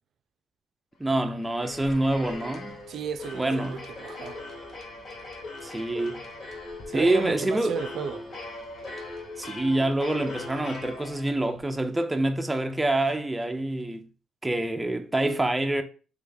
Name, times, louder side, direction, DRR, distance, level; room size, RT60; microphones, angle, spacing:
voice 1, 1.0-2.8 3.3-3.8 5.6-6.3 6.9-7.8 9.4-14.1 14.4-15.8, right 1 dB, 10° right, 0.5 m, -26 dB
sound 1, 1.2-11.6, left 2 dB, 55° left, 1.3 m, -40 dB
voice 2, 2.9-4.4 6.9-8.2, right 7 dB, 65° right, 0.4 m, -33 dB
3.4 x 3.2 x 3.9 m
cardioid pair, 90°, 0 cm